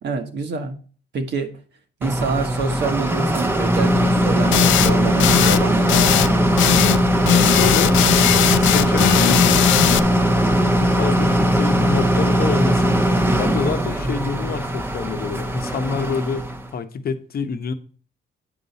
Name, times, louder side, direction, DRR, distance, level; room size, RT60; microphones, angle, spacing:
voice 1, 0.0-0.8 1.1-1.6 2.0-6.1, right 4 dB, 60° right, 1.3 m, -26 dB
sound 1, 2.0-16.7, equal, 10° right, 0.8 m, -19 dB
sound 2, 4.5-4.9 5.2-5.6 5.9-6.3 6.6-7.0 7.3-10.0, left 13 dB, 75° left, 0.4 m, -18 dB
voice 2, 7.3-8.0 8.6-10.1 10.8-13.0 13.4-17.7, left 5 dB, 50° left, 0.9 m, -27 dB
8.6 x 5.5 x 4.1 m
cardioid pair, 90°, 20 cm